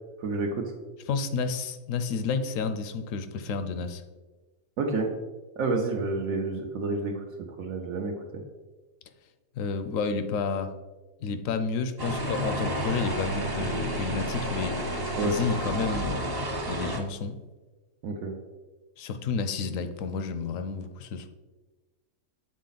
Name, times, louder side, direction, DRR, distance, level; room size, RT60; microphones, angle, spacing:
voice 1, 0.2-0.7 4.8-5.1 5.6-7.2 7.6-8.1 15.1-15.3 18.0-18.3, right 3 dB, 75° right, 1 dB, 1.1 m, -29 dB
voice 2, 1.1-4.0 9.6-10.7 11.2-14.8 15.2-16.3 16.7-17.4 19.0-21.3, left 5 dB, 70° left, 9 dB, 0.9 m, -30 dB
sound 1, 12.0-17.0, right 1 dB, 30° right, 0.4 m, -31 dB
7.4 x 4.1 x 4.0 m, 1.2 s
omnidirectional pair, 1.5 m